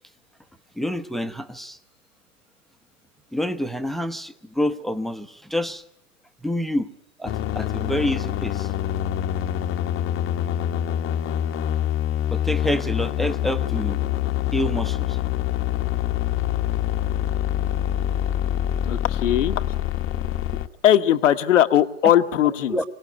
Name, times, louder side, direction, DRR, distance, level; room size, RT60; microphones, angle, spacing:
voice 1, 0.8-1.8 3.3-5.8 6.4-6.9 7.2-8.7 12.3-14.0 14.5-15.2 22.7-22.8, left 1 dB, ahead, 9 dB, 0.9 m, -27 dB
sound 1, 7.3-20.7, left 11 dB, 35° left, 1.0 m, -25 dB
voice 2, 18.8-19.6 20.8-22.8, left 11 dB, 80° left, 11 dB, 1.3 m, -19 dB
24.0 x 18.0 x 8.1 m, 0.73 s
hypercardioid pair, 110°, 37 cm